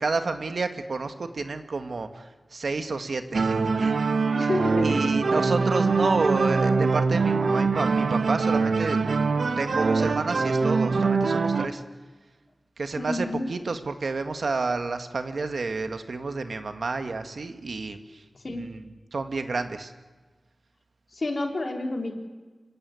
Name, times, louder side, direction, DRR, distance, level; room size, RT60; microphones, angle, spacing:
voice 1, 0.0-3.9 4.4-4.5 4.8-9.0 9.6-11.8 12.8-19.9, right 3 dB, 75° right, 7 dB, 1.7 m, -30 dB
sound 1, 3.3-11.7, right 4 dB, 90° right, 1.2 m, -23 dB
voice 2, 4.3-5.2 6.0-6.1 13.0-13.5 18.3-18.7 21.1-22.1, left 2 dB, 50° left, 3 dB, 3.2 m, -29 dB
26.0 x 15.5 x 9.8 m, 1.3 s
wide cardioid pair, 90°, 0 cm